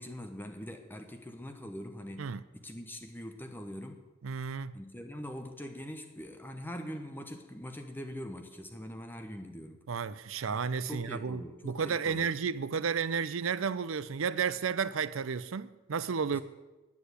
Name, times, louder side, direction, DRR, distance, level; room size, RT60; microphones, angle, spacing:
voice 1, 0.0-4.0 4.7-9.8 10.6-12.3 16.3-16.4, equal, 10° left, 1.0 m, -43 dB
voice 2, 4.2-4.7 9.9-16.4, right 6 dB, 85° right, 0.5 m, -32 dB
10.5 x 9.7 x 8.2 m
head